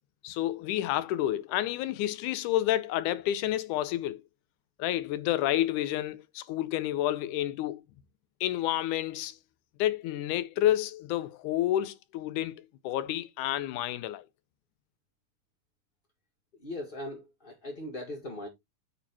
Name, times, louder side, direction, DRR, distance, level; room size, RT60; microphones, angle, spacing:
voice 1, 0.2-4.2 4.8-7.8 8.4-9.4 9.8-14.2, left 13 dB, 90° left, 2.2 m, -29 dB
voice 2, 16.6-18.5, left 1 dB, 25° left, 1.2 m, -39 dB
8.9 x 4.1 x 4.4 m
omnidirectional pair, 3.6 m